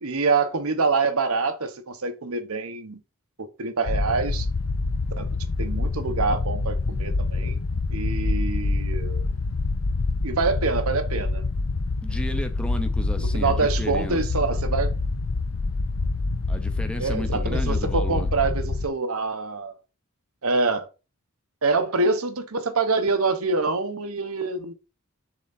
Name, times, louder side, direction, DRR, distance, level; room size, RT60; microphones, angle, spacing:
voice 1, 0.0-3.0 3.4-4.5 5.2-5.3 5.6-7.6 7.9-9.3 10.2-11.4 13.2-14.9 17.0-19.7 20.4-20.9 21.6-24.7, right 4 dB, 80° right, 1.0 m, -25 dB
sound 1, 3.9-18.9, left 3 dB, 80° left, 0.8 m, -26 dB
voice 2, 12.0-14.3 16.5-18.3, equal, 5° left, 0.6 m, -34 dB
7.3 x 3.8 x 4.1 m
head